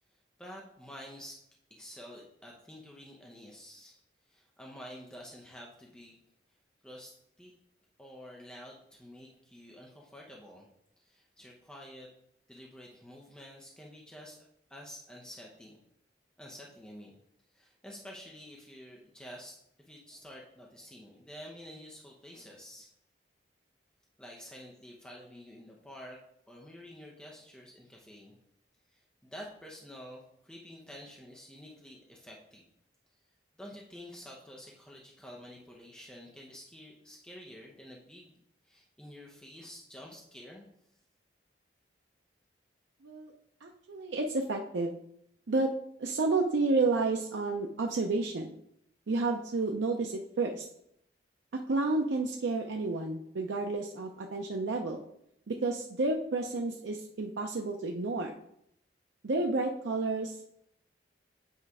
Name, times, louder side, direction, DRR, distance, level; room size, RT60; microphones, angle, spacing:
voice 1, 0.4-1.4 1.7-4.0 4.3-6.2 6.8-7.5 8.0-10.7 11.0-12.1 12.5-14.4 14.7-15.8 16.4-17.2 17.5-22.9 24.2-26.2 26.5-28.4 28.9-32.7 33.6-38.3 38.6-40.7, equal, 5° left, -2 dB, 0.7 m, -49 dB
voice 2, 43.6-45.0 45.5-45.7 46.0-48.5 49.1-50.7 51.5-55.0 55.5-58.3 59.2-60.5, right 3 dB, 80° right, 2 dB, 0.5 m, -31 dB
8.2 x 3.3 x 4.8 m, 0.74 s
head